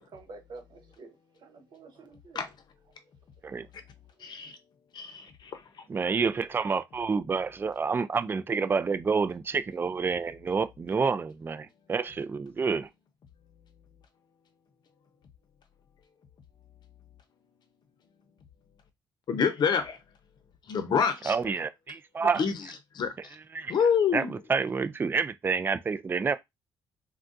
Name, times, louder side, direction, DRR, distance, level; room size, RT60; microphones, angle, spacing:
voice 1, 0.0-2.4, right 3 dB, 55° right, 1.1 m, -49 dB
voice 2, 4.2-4.5 4.9-5.8 19.3-20.0 20.7-21.3 22.3-22.6 22.9-23.4 23.7-24.3, left 6 dB, 55° left, 0.8 m, -27 dB
voice 3, 5.9-12.9 21.3-22.4 23.5-23.7 24.1-26.3, right 5 dB, 25° right, 0.3 m, -28 dB
3.5 x 2.3 x 2.5 m
cardioid pair, 85°, 9 cm